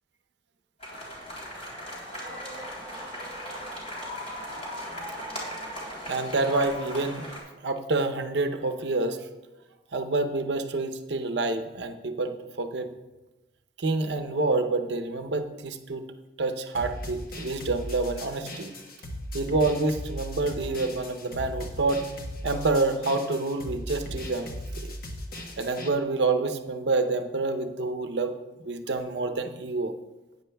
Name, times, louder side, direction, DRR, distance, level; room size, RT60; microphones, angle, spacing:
sound 1, 0.8-7.4, equal, 40° left, 3.2 m, -38 dB
voice 1, 6.1-7.2 7.6-9.3 9.9-12.9 13.8-16.0 16.4-18.7 19.3-22.1 22.4-24.5 25.6-28.3 28.6-29.9, right 3 dB, 70° right, 7 dB, 0.7 m, -27 dB
sound 2, 16.7-25.9, equal, 55° left, 1.2 m, -38 dB
14.5 x 9.2 x 2.3 m, 1.1 s
head